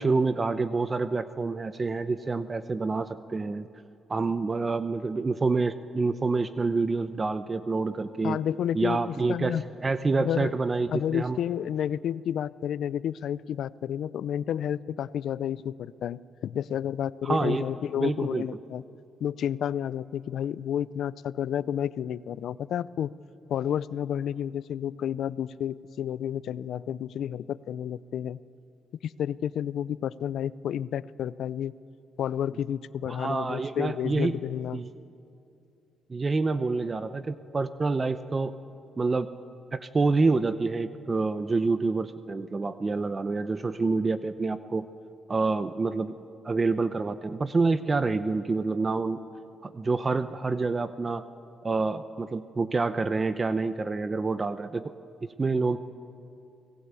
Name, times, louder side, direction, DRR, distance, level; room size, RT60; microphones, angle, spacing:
voice 1, 0.0-3.7 4.1-8.4 8.7-11.4 17.2-17.6 18.0-18.5 33.1-34.4 34.7-34.9 36.1-38.5 39.0-39.3 39.7-44.9 45.3-46.1 46.4-49.2 49.6-51.2 51.6-54.9 55.4-55.8, right 3 dB, 30° right, 12 dB, 0.8 m, -27 dB
voice 2, 8.2-9.6 10.2-10.5 10.9-18.8 19.2-23.1 23.5-28.4 29.0-31.7 32.2-34.8, left 9 dB, 70° left, 19 dB, 0.5 m, -31 dB
25.5 x 18.5 x 8.3 m, 2.6 s
cardioid pair, 90°, 0 cm